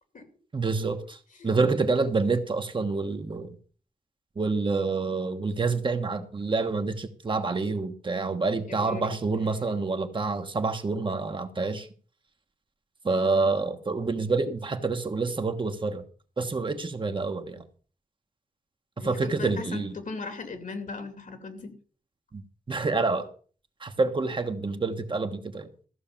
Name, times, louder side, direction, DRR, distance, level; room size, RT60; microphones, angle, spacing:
voice 1, 0.5-1.2 1.4-3.6 4.4-11.9 13.0-16.0 16.4-17.7 19.0-19.9 22.3-22.4 22.7-23.3 23.8-25.7, right 3 dB, 35° right, 1.3 m, -27 dB
voice 2, 8.7-9.2 19.0-21.7, left 3 dB, 65° left, 2.7 m, -38 dB
14.5 x 6.4 x 7.2 m
wide cardioid pair, 145°, 15 cm